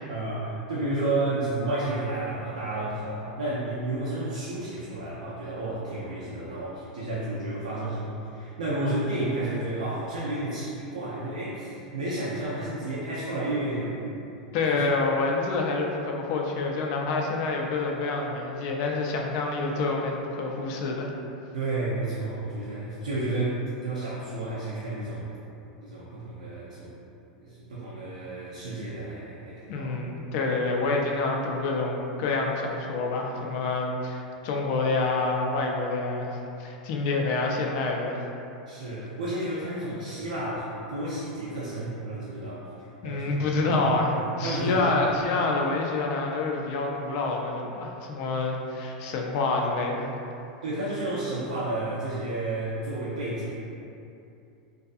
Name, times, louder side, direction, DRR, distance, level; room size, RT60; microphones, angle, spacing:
voice 1, 0.1-14.0 14.7-14.9 21.5-25.3 25.8-26.9 27.4-30.0 38.7-42.6 43.0-43.4 43.6-44.0 44.4-44.9 50.6-53.6, right 2 dB, 85° right, -8 dB, 0.4 m, -31 dB
voice 2, 14.5-21.1 29.7-38.3 43.0-44.1 44.4-50.1, left 3 dB, 55° left, 0 dB, 0.4 m, -27 dB
2.4 x 2.4 x 2.4 m, 2.7 s
hypercardioid pair, 100°, 4 cm